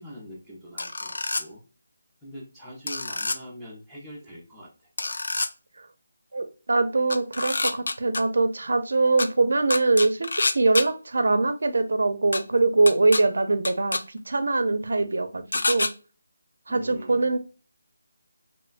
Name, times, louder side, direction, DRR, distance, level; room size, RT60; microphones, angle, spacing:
voice 1, 0.0-1.6 2.2-4.9 16.7-17.3, equal, ahead, -8 dB, 0.5 m, -43 dB
sound 1, 0.8-1.4 2.9-3.4 5.0-5.5 7.1-8.2 9.2-9.3 9.7-10.8 12.3-12.4 12.9-13.2 13.6-14.0 15.5-15.9, left 2 dB, 70° left, 0.3 m, -27 dB
voice 2, 6.3-15.9 16.7-17.4, right 3 dB, 70° right, 10 dB, 0.4 m, -23 dB
2.9 x 2.2 x 2.3 m, 0.34 s
figure-of-eight pair, 175°, 0 cm